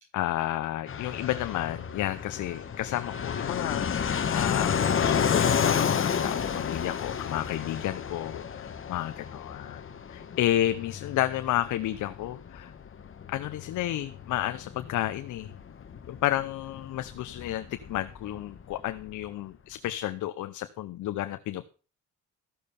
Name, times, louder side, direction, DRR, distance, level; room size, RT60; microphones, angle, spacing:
voice 1, 0.1-9.8 10.1-12.7 13.3-15.5 16.1-21.6, left 13 dB, 75° left, 10 dB, 0.8 m, -31 dB
Fixed-wing aircraft airplane, 0.9-19.2, left 7 dB, 45° left, 1.4 m, -31 dB
14.0 x 6.6 x 6.9 m, 0.36 s
cardioid pair, 90°, 30 cm